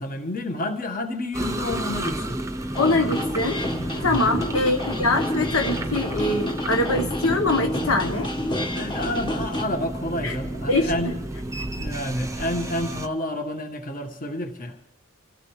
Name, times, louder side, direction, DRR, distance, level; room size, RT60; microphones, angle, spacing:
voice 1, 0.0-2.4 3.9-4.3 8.7-11.1 11.8-14.7, left 1 dB, 40° left, 5 dB, 1.6 m, -29 dB
sound 1, 1.3-13.1, right 1 dB, 15° right, 0.8 m, -32 dB
sound 2, 2.7-9.6, left 1 dB, 20° left, 1.4 m, -29 dB
voice 2, 2.8-3.6 4.0-8.3 10.2-10.3 10.7-11.2, left 2 dB, 75° left, 4 dB, 1.2 m, -23 dB
27.5 x 16.0 x 3.3 m, 0.88 s
head